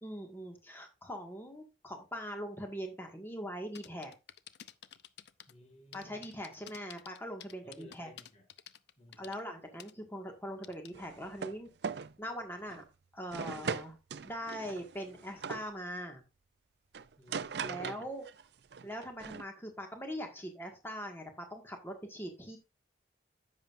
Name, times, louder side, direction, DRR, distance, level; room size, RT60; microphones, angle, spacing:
voice 1, 0.0-4.1 5.9-8.1 9.2-11.7 12.2-12.8 13.1-14.0 14.2-16.2 17.6-18.3 18.8-22.6, equal, 10° left, 1.8 m, -42 dB
sound 1, 3.7-5.5 5.9-9.4 9.8-9.9 10.6-10.9, left 10 dB, 65° left, 0.5 m, -51 dB
voice 2, 5.5-6.3 7.6-8.5 9.0-9.4 17.2-18.0, equal, 35° left, 2.0 m, -57 dB
sound 2, 10.9-11.6 11.8-12.1 12.7-12.9 13.3-15.7 16.9-18.4 18.7-19.4, right 5 dB, 65° right, 0.5 m, -40 dB
10.5 x 7.5 x 2.6 m
head